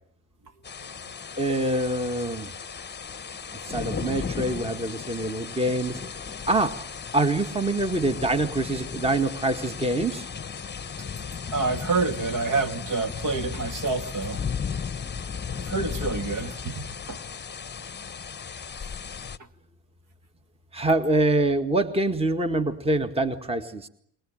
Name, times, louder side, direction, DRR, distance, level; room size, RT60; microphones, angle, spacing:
sound 1, 0.6-19.4, left 6 dB, 25° left, 1.2 m, -35 dB
voice 1, 1.4-2.5 3.7-6.0 6.5-6.8 7.1-10.3 20.7-23.9, right 2 dB, 15° right, 1.9 m, -25 dB
voice 2, 11.5-14.5 15.5-17.2, right 4 dB, 40° right, 2.4 m, -28 dB
28.5 x 22.0 x 8.9 m
supercardioid pair, 75°, 46 cm